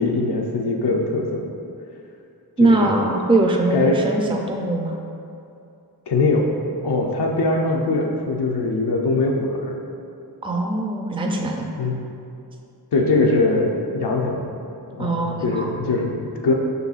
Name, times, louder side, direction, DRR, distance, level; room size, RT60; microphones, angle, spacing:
voice 1, 0.0-1.5 2.6-2.9 3.7-4.0 6.1-6.5 6.8-9.8 11.8-12.0 12.9-14.5 14.9-16.5, left 2 dB, 80° left, -1 dB, 0.5 m, -22 dB
voice 2, 2.6-5.0 10.4-11.7 15.0-15.7, right 2 dB, 15° right, 1 dB, 0.4 m, -21 dB
5.4 x 4.0 x 2.4 m, 2.6 s
wide cardioid pair, 65°, 39 cm